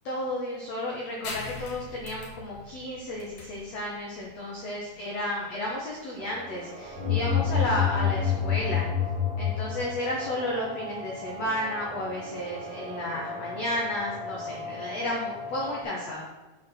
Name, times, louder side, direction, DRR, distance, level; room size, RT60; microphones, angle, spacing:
voice 1, 0.0-8.9 9.4-16.3, left 1 dB, 80° left, -3 dB, 1.5 m, -32 dB
sound 1, 1.2-8.4, left 3 dB, 60° left, 2.6 m, -44 dB
sound 2, 6.2-15.8, left 1 dB, 80° right, 1.2 m, -40 dB
sound 3, 7.0-10.2, left 8 dB, 10° right, 2.4 m, -27 dB
8.1 x 4.8 x 6.3 m, 1.2 s
omnidirectional pair, 5.0 m